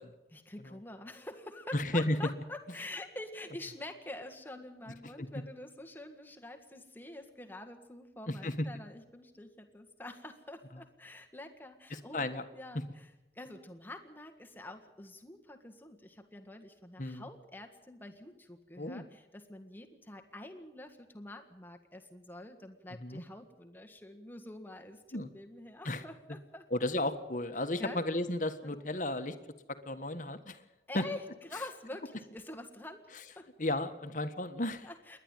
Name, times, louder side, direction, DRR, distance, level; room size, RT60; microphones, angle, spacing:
voice 1, 0.3-12.2 12.5-13.1 13.3-26.6 27.8-28.0 28.6-28.8 30.9-33.5 34.8-35.2, left 1 dB, 10° left, 5 dB, 1.7 m, -47 dB
voice 2, 1.7-2.2 5.2-5.3 8.3-8.7 10.7-10.8 11.9-12.4 17.0-17.3 18.8-19.0 22.9-23.2 25.1-25.3 25.8-26.0 26.7-29.3 29.7-30.6 30.9-31.0 33.6-34.9, left 1 dB, 45° left, 9 dB, 1.5 m, -34 dB
28.5 x 11.5 x 9.1 m, 1.0 s
head